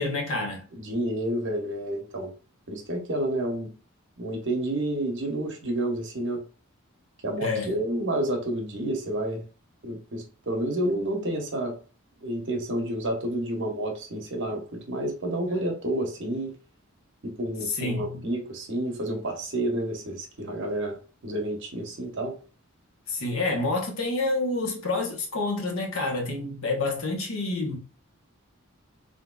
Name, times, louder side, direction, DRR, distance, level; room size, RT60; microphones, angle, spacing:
voice 1, 0.0-0.6 7.4-7.8 17.6-18.3 23.1-27.8, left 2 dB, 75° left, 0.9 m, -28 dB
voice 2, 0.7-2.3 2.7-3.7 4.2-6.4 7.2-9.4 9.8-11.7 12.2-14.6 14.9-16.5 17.2-21.0 21.2-22.3, right 1 dB, 60° right, 0.9 m, -29 dB
3.5 x 2.7 x 2.2 m
head